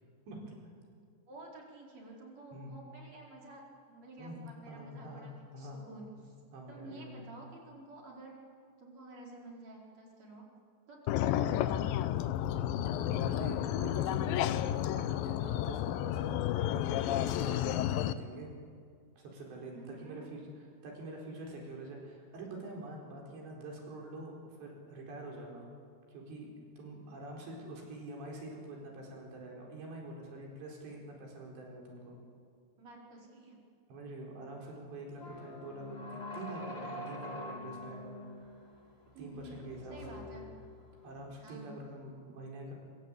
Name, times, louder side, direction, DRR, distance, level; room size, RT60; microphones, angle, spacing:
voice 1, 1.3-6.3 6.7-8.4 8.8-10.5 10.9-12.1 19.7-20.6 32.8-33.6 35.2-35.5 39.1-39.6 39.9-40.5 41.4-41.7, right 2 dB, 40° right, -1 dB, 5.6 m, -51 dB
voice 2, 4.2-5.8 6.5-7.3 13.0-14.6 14.8-18.5 19.2-19.7 20.0-20.4 20.8-25.7 26.1-32.2 33.9-38.7 39.2-40.2 41.0-42.7, right 1 dB, 80° right, -1 dB, 6.9 m, -46 dB
sound 1, 11.1-18.1, left 11 dB, 75° left, 2.1 m, -31 dB
sound 2, 35.2-41.2, left 1 dB, 30° left, 1.1 m, -45 dB
25.0 x 23.5 x 8.7 m, 2.1 s
omnidirectional pair, 4.9 m